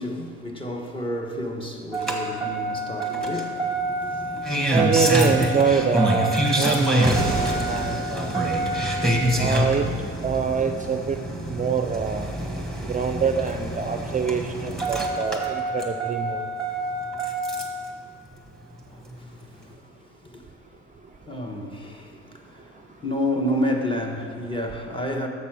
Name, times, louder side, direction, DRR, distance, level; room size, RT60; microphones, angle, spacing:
voice 1, 0.0-5.2 18.9-20.8 21.1-25.3, left 1 dB, 15° left, 1.3 m, -31 dB
Engine starting, 1.9-17.9 19.1-19.2, right 1 dB, ahead, 1.5 m, -26 dB
voice 2, 4.7-7.2 7.5-8.3 9.4-9.9 10.2-11.2 11.5-12.3 12.9-16.5, right 6 dB, 25° right, 0.5 m, -24 dB
8.3 x 6.7 x 6.3 m
cardioid pair, 90°, 30 cm